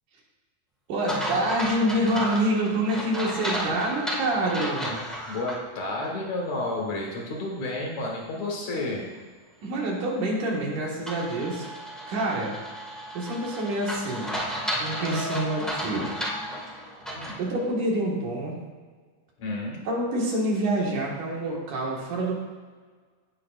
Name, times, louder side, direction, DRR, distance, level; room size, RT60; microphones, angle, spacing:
voice 1, 0.9-5.0 9.6-11.7 12.1-12.5 13.1-14.3 14.8-16.1 17.4-18.5 19.8-22.3, right 1 dB, 85° right, -3 dB, 3.3 m, -27 dB
sound 1, 1.1-5.6 6.0-6.1 11.1-17.4, equal, ahead, 0.6 m, -33 dB
voice 2, 5.3-9.1 17.1-17.4 19.4-19.8, left 2 dB, 65° left, -1 dB, 2.8 m, -31 dB
17.0 x 6.4 x 2.5 m, 1.5 s
omnidirectional pair, 3.5 m